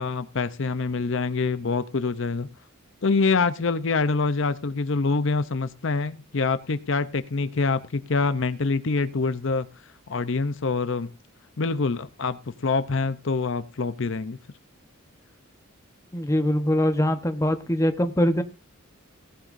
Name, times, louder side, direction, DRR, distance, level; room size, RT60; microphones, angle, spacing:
voice 1, 0.0-2.5 3.0-9.7 10.1-11.1 11.6-14.4, left 4 dB, 60° left, 0.7 m, -25 dB
voice 2, 16.1-18.4, equal, 15° left, 1.0 m, -23 dB
17.5 x 11.5 x 2.6 m
head